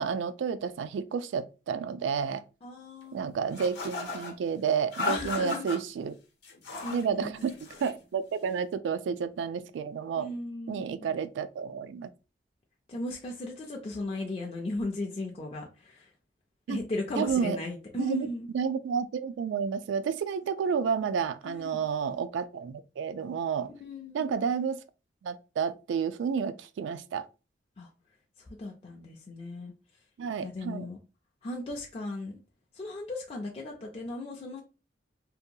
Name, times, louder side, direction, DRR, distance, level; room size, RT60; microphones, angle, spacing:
voice 1, 0.0-2.4 3.1-6.1 6.9-7.5 7.8-10.3 10.7-12.1 16.7-16.8 17.2-17.6 17.9-18.3 18.5-23.7 24.1-24.8 25.2-27.3 30.2-30.9, right 6 dB, 90° right, 0.3 m, -30 dB
voice 2, 2.6-3.2 5.1-5.7 6.8-7.5 8.5-8.6 10.2-11.1 12.9-16.1 16.7-18.5 21.4-21.8 23.7-24.4 27.8-27.9 28.4-29.7 30.4-31.0 31.4-32.3 32.7-34.6, left 2 dB, 30° left, 0.4 m, -37 dB
sound 1, 3.5-4.3 4.9-5.8 6.4-7.1 7.4-8.0, left 4 dB, 70° left, 0.7 m, -35 dB
2.7 x 2.2 x 2.6 m
head